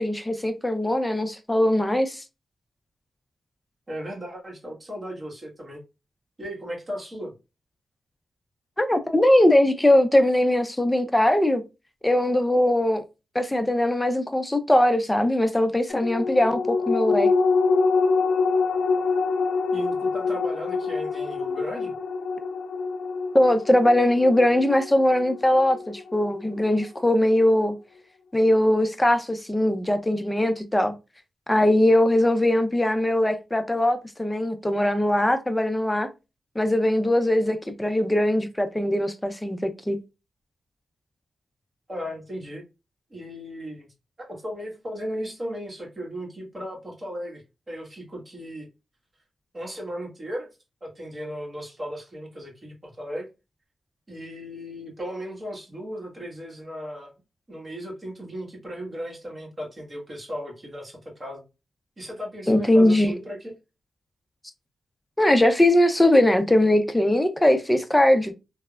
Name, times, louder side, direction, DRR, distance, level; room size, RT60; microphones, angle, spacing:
voice 1, 0.0-2.2 8.8-11.6 12.0-13.0 13.3-17.3 23.3-27.8 28.3-30.9 31.5-36.1 36.6-40.0 62.5-63.1 65.2-68.3, left 1 dB, 15° left, 0.5 m, -21 dB
voice 2, 3.9-5.8 6.4-7.3 19.7-21.9 41.9-42.6 43.1-43.9 44.2-47.4 47.7-48.7 49.5-50.5 50.8-53.3 54.1-57.1 57.5-61.4 62.0-63.5, equal, 40° right, 1.3 m, -36 dB
sound 1, 15.9-26.7 27.1-27.2, left 4 dB, 90° left, 0.4 m, -25 dB
3.2 x 2.0 x 2.3 m
cardioid pair, 55°, 0 cm